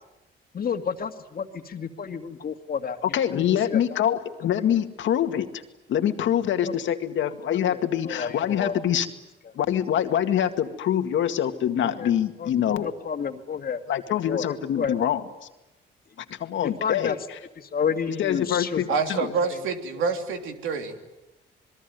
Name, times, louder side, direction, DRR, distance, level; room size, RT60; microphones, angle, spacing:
voice 1, 0.5-3.0 3.3-4.0 6.6-6.8 7.5-8.7 12.0-12.1 12.4-13.8 14.3-14.9 16.6-17.2 17.6-19.0 20.0-20.1, left 6 dB, 50° left, 6 dB, 2.2 m, -31 dB
voice 2, 3.1-5.6 5.9-9.1 9.5-12.9 13.9-15.2 16.2-17.4 18.1-19.3, left 10 dB, 75° left, 8 dB, 2.1 m, -25 dB
voice 3, 18.9-21.0, right 5 dB, 85° right, 5 dB, 3.2 m, -27 dB
27.0 x 22.0 x 9.4 m, 0.95 s
cardioid pair, 90°, 20 cm